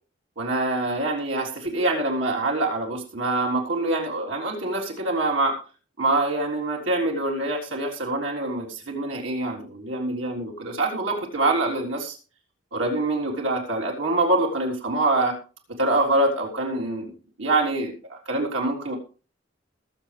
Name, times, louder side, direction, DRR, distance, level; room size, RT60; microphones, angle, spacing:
voice 1, 0.4-5.5 6.0-12.2 12.7-15.3 15.8-17.1 17.4-19.0, right 2 dB, 90° right, -1 dB, 3.8 m, -25 dB
21.0 x 7.6 x 3.4 m, 0.36 s
head